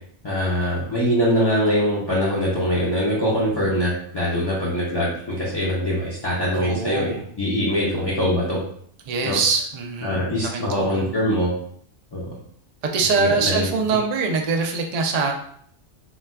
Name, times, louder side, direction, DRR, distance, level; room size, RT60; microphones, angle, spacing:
voice 1, 0.2-8.6 9.2-9.4 10.0-11.5 12.1-12.2 13.2-13.7, equal, 30° left, -7 dB, 0.5 m, -23 dB
voice 2, 6.6-7.3 9.1-11.1 12.8-15.3, right 4 dB, 70° right, 2 dB, 0.3 m, -23 dB
4.0 x 2.2 x 2.2 m, 0.64 s
omnidirectional pair, 1.2 m